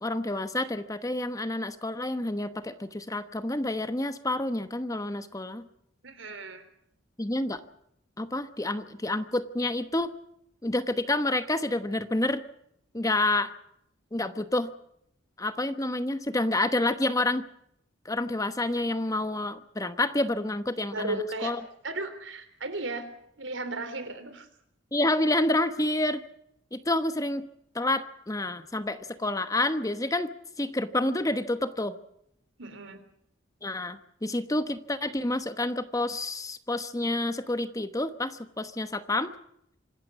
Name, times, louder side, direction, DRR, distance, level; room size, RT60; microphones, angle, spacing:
voice 1, 0.0-5.6 7.2-7.6 8.2-10.1 10.6-12.4 12.9-13.5 14.1-14.7 15.4-17.4 18.0-21.6 24.9-26.2 26.7-27.5 27.7-30.3 30.6-31.9 33.6-39.3, left 2 dB, 15° left, 11 dB, 1.0 m, -28 dB
voice 2, 6.0-6.7 20.9-21.5 21.8-23.1 23.4-24.5 32.6-33.0, right 2 dB, 75° right, 10 dB, 3.6 m, -35 dB
26.5 x 13.5 x 8.2 m, 0.73 s
head